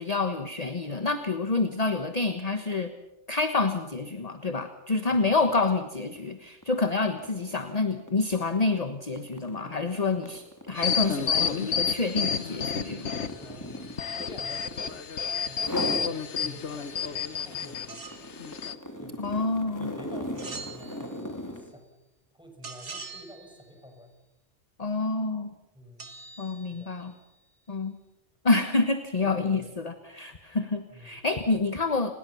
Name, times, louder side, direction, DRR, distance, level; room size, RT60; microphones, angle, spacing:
voice 1, 0.0-2.9 3.3-13.1 19.2-19.9 24.8-25.5 26.4-27.1 27.7-27.9 28.4-32.1, left 3 dB, 35° left, 8 dB, 1.3 m, -28 dB
sound 1, 6.1-6.3 6.6-15.1 15.5-16.1 16.6-21.7, left 1 dB, 15° left, 3.0 m, -39 dB
sound 2, 10.8-13.5 13.9-17.9 18.4-18.7, left 6 dB, 80° left, 1.4 m, -30 dB
voice 2, 13.2-13.8 14.1-18.3 19.0-19.3 19.7-21.9 22.3-24.2 25.7-26.2 26.7-26.9 29.2-29.8 30.9-31.2, equal, 5° right, 3 dB, 5.7 m, -48 dB
sound 3, 17.9-18.3 20.3-21.3 22.6-23.7 26.0-27.1, right 4 dB, 90° right, 2.6 m, -43 dB
29.5 x 20.0 x 7.0 m, 0.98 s
omnidirectional pair, 1.2 m